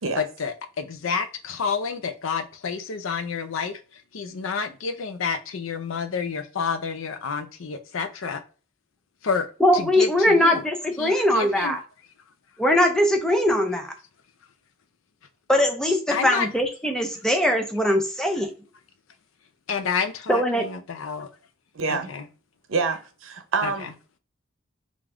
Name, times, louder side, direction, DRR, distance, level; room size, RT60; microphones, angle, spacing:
voice 1, 0.2-3.8 4.1-8.4 9.2-9.5 9.7-10.6 11.0-11.8 16.1-16.5 19.7-21.3 21.9-22.3 23.6-23.7, left 5 dB, 85° left, 0.5 m, -29 dB
voice 2, 9.6-11.8 12.6-13.9 15.5-18.5 20.3-20.7, left 1 dB, 5° left, 0.5 m, -21 dB
voice 3, 21.7-22.1 22.7-23.9, right 4 dB, 85° right, 0.7 m, -26 dB
3.4 x 2.5 x 3.5 m
head